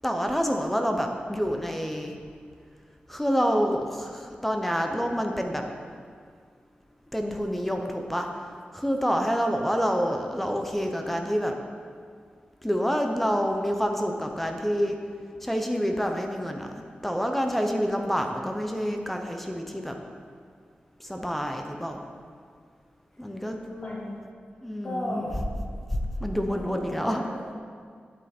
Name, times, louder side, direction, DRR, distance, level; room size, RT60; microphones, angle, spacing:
voice 1, 0.0-2.1 3.1-5.6 7.1-8.3 8.7-11.6 12.6-15.0 15.4-16.7 17.0-20.0 21.0-22.0 23.2-23.6 24.6-25.2 25.9-27.2, equal, 5° left, 3 dB, 0.7 m, -27 dB
voice 2, 23.7-24.2 24.8-25.4 26.5-27.5, left 1 dB, 40° left, -5 dB, 1.9 m, -36 dB
8.9 x 8.5 x 4.3 m, 2.1 s
wide cardioid pair, 125°, 3 cm